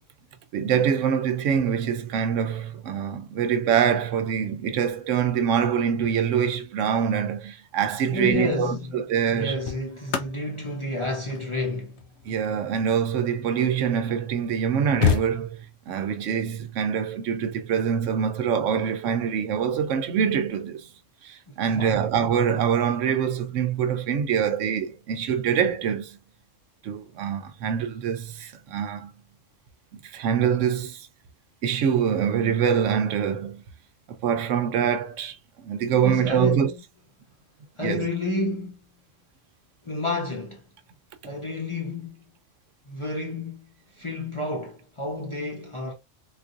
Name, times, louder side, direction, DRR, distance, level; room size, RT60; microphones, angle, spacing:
voice 1, 0.5-9.6 12.3-20.9 21.2-26.2 26.8-29.1 29.9-31.1 31.6-33.6 34.1-36.7 37.8-38.0, right 8 dB, 80° right, 0.9 m, -25 dB
voice 2, 8.1-9.0 9.3-12.1 21.8-22.0 36.0-36.8 37.8-38.9 39.8-40.6 41.2-42.2 42.9-45.9, left 2 dB, 35° left, 0.5 m, -30 dB
sound 1, 9.2-13.8 14.4-14.5 14.6-15.9 17.6-17.8, left 8 dB, 65° left, 0.8 m, -31 dB
3.8 x 2.4 x 2.5 m
omnidirectional pair, 1.3 m